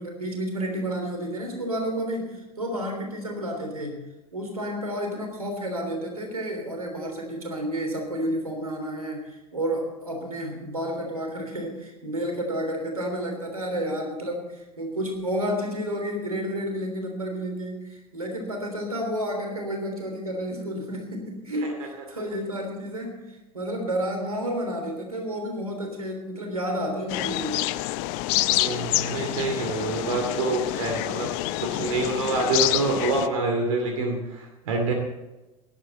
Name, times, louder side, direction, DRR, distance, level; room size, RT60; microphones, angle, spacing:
voice 1, 0.0-4.0 4.3-27.6, equal, 85° right, 3 dB, 3.3 m, -31 dB
sound 1, 27.1-33.3, left 17 dB, 55° left, 0.7 m, -27 dB
voice 2, 28.5-31.3 31.6-34.9, right 3 dB, 65° right, 2 dB, 2.6 m, -26 dB
18.5 x 11.0 x 4.2 m, 1.1 s
figure-of-eight pair, 70°, 18 cm